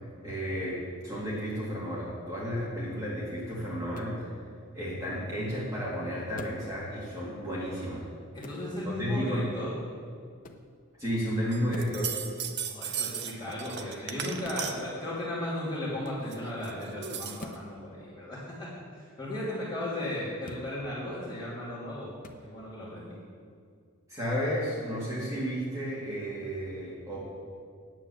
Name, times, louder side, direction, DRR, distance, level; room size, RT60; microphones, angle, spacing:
voice 1, 0.2-4.3 4.7-8.1 9.0-9.4 11.0-12.2 24.1-27.2, equal, 15° right, -8 dB, 2.4 m, -32 dB
sound 1, 3.9-4.2 6.3-6.7 8.4-8.7 10.4-10.7 11.7-12.0 14.4-14.7 17.4-17.6 20.4-20.7 22.2-22.4, left 2 dB, 40° left, 0.7 m, -44 dB
voice 2, 8.3-9.8 12.7-22.1 22.4-23.2, left 1 dB, 20° left, -9 dB, 3.0 m, -36 dB
sound 2, 11.5-15.0 16.1-17.6, right 7 dB, 50° right, 0.8 m, -36 dB
9.4 x 8.4 x 7.1 m, 2.2 s
head